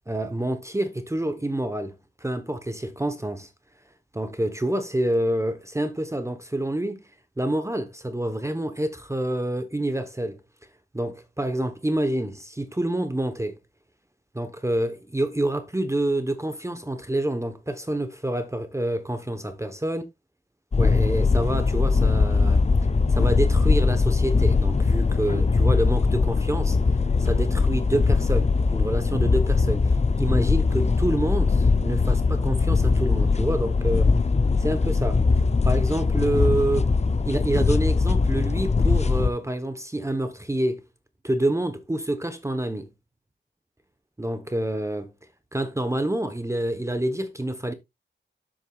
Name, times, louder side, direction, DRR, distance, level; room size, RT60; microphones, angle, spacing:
voice 1, 0.1-3.5 4.1-7.0 7.4-10.4 10.9-13.6 14.3-20.0 20.8-22.6 23.1-26.8 27.2-34.1 34.6-35.2 35.6-36.9 37.2-40.8 41.2-42.9 44.2-45.1 45.5-47.7, right 1 dB, 15° right, 1.0 m, -27 dB
sound 1, 20.7-39.3, left 4 dB, 35° left, 0.5 m, -21 dB
10.0 x 7.7 x 2.3 m
wide cardioid pair, 90°, 20 cm